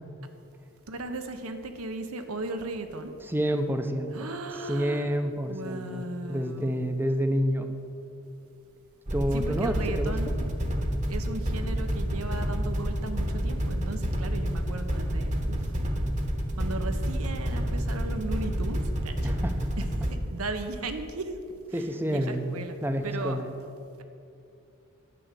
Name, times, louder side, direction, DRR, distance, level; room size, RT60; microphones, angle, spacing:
voice 1, 0.9-3.1 4.1-5.1 5.5-6.8 9.3-10.5 11.1-15.7 16.6-19.3 19.8-19.9 20.3-21.4 21.7-22.8 23.0-23.4, right 2 dB, 80° right, 7 dB, 1.0 m, -36 dB
voice 2, 3.2-4.3 4.6-7.7 9.1-10.1 19.2-19.7 21.7-23.5, equal, 10° right, 7 dB, 0.7 m, -29 dB
sound 1, 9.1-20.1, equal, 35° right, 1.1 m, -29 dB
10.5 x 6.2 x 8.4 m, 2.6 s
head